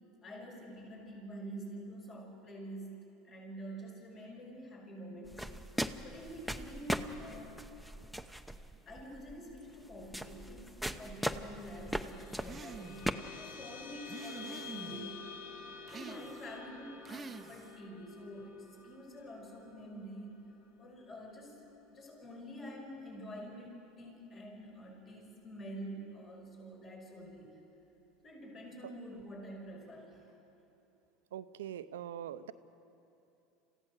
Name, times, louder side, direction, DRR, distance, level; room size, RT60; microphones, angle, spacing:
voice 1, 0.2-5.5 6.0-7.8 8.9-15.3 15.9-20.5 20.8-21.6 21.9-27.6 28.2-30.3, equal, 40° left, -1 dB, 5.8 m, -47 dB
sound 1, 5.3-13.1, equal, 5° left, 0.8 m, -39 dB
sound 2, 11.5-22.1, left 5 dB, 70° left, 1.9 m, -51 dB
sound 3, 12.4-13.2 14.1-15.1 15.9-16.6 17.0-17.8, right 5 dB, 25° right, 0.6 m, -48 dB
voice 2, 31.3-32.5, right 10 dB, 85° right, 13 dB, 0.6 m, -42 dB
27.0 x 15.5 x 6.5 m, 2.8 s
hypercardioid pair, 85°, 0 cm